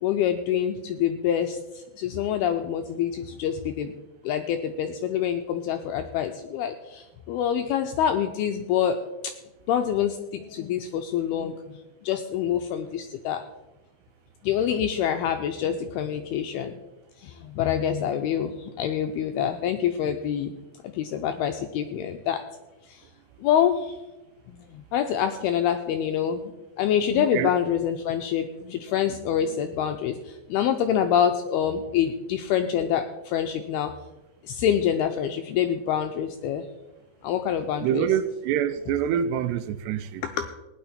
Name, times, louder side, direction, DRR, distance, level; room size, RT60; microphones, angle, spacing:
voice 1, 0.0-3.9 4.2-9.0 9.2-9.3 9.7-11.8 12.0-13.4 14.4-16.8 17.2-20.5 20.9-22.4 22.9-23.0 23.4-24.0 24.5-26.5 26.8-33.9 34.4-36.7 37.2-38.2 38.9-39.6 40.2-40.5, left 9 dB, 90° left, 2.2 m, -26 dB
voice 2, 27.2-27.5 37.8-40.2, right 9 dB, 80° right, 2.6 m, -26 dB
17.0 x 10.0 x 4.3 m
omnidirectional pair, 5.2 m